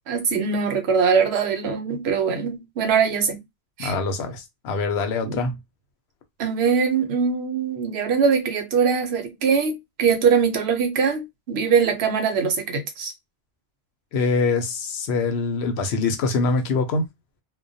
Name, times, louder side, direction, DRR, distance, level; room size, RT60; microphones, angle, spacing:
voice 1, 0.1-3.4 3.8-3.9 5.2-5.5 6.4-13.1, right 6 dB, 80° right, 0.9 m, -22 dB
voice 2, 3.8-5.5 14.1-17.0, left 4 dB, 85° left, 0.9 m, -24 dB
2.2 x 2.2 x 2.6 m
omnidirectional pair, 1.1 m